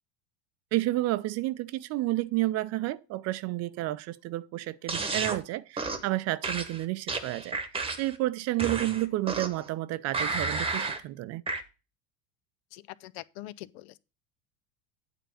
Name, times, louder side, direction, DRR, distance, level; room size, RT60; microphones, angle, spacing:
voice 1, 0.7-11.4, right 17 dB, 50° right, 0.5 m, -31 dB
sound 1, 4.9-5.4 5.8-6.1 6.4-8.2 8.6-9.7 10.1-11.0 11.5-11.6, right 3 dB, 15° right, 1.1 m, -32 dB
voice 2, 12.7-14.0, left 16 dB, 70° left, 0.6 m, -43 dB
9.1 x 3.8 x 6.7 m
supercardioid pair, 100°, 33 cm